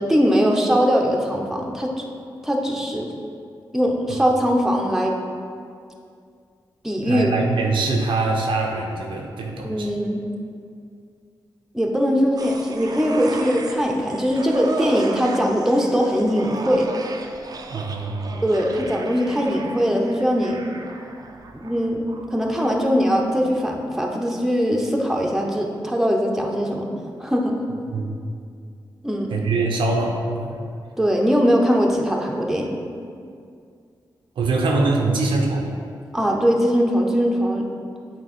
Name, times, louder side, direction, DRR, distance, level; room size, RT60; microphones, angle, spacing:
voice 1, 0.0-2.0 2.4-3.1 3.7-5.2 6.8-7.3 9.6-10.2 11.7-16.9 18.4-20.6 21.5-22.0 22.3-26.9 27.2-27.6 29.0-29.4 31.0-32.8 36.1-37.6, equal, 5° right, 0 dB, 0.8 m, -21 dB
voice 2, 7.0-9.9 17.7-18.3 27.9-28.1 29.3-30.6 34.4-35.7, right 3 dB, 85° right, 0 dB, 0.8 m, -23 dB
sound 1, 12.4-23.9 24.2-24.3, right 3 dB, 50° right, 0.5 m, -35 dB
8.1 x 3.0 x 4.4 m, 2.3 s
cardioid pair, 70°, 8 cm